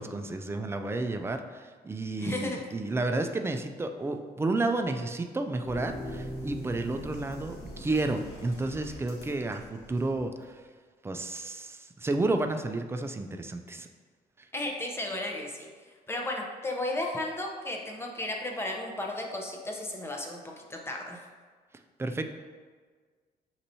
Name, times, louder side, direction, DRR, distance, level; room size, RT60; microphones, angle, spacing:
voice 1, 0.0-10.6 11.0-13.9 22.0-22.2, right 2 dB, 15° right, 6 dB, 0.3 m, -31 dB
voice 2, 2.2-2.6 14.5-15.7 16.1-21.2, left 1 dB, 15° left, 0 dB, 0.7 m, -34 dB
sound 1, 5.6-10.2 10.5-10.6, equal, 80° left, 1.2 m, -41 dB
6.3 x 2.9 x 2.7 m, 1.5 s
cardioid pair, 95°, 17 cm